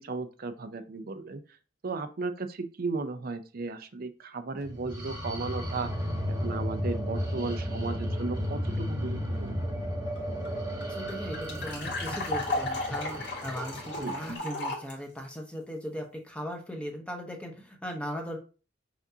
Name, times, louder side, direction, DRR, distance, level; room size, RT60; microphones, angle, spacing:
voice 1, 0.0-1.4 1.8-5.9 6.3-9.6 14.0-14.1, right 3 dB, 50° right, 9 dB, 0.5 m, -35 dB
sound 1, 4.6-14.4, equal, 20° right, 1.1 m, -34 dB
sound 2, 10.2-10.3 10.4-10.5 10.8-14.9, left 2 dB, 65° left, 1.7 m, -34 dB
voice 2, 10.9-18.4, equal, 5° left, 2 dB, 0.9 m, -38 dB
5.8 x 2.6 x 2.7 m, 0.34 s
head